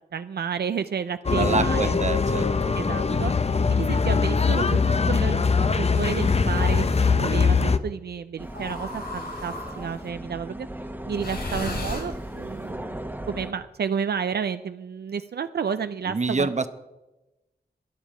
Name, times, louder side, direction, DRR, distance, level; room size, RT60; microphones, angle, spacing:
voice 1, 0.1-2.0 2.7-4.8 5.1-10.7 11.0-13.0 13.3-16.7, right 7 dB, 80° right, 11 dB, 0.5 m, -31 dB
sound 1, 1.2-7.8, left 5 dB, 40° left, 0.7 m, -22 dB
voice 2, 1.3-2.5 16.1-16.7, right 4 dB, 45° right, 11 dB, 0.9 m, -26 dB
sound 2, 2.1-2.8 3.7-4.9 5.9-7.2 8.5-10.0 11.1-12.6, left 2 dB, 70° left, 5.9 m, -37 dB
sound 3, 8.4-13.5, right 1 dB, 10° right, 1.1 m, -37 dB
22.0 x 7.4 x 4.9 m, 1.0 s
wide cardioid pair, 75°, 17 cm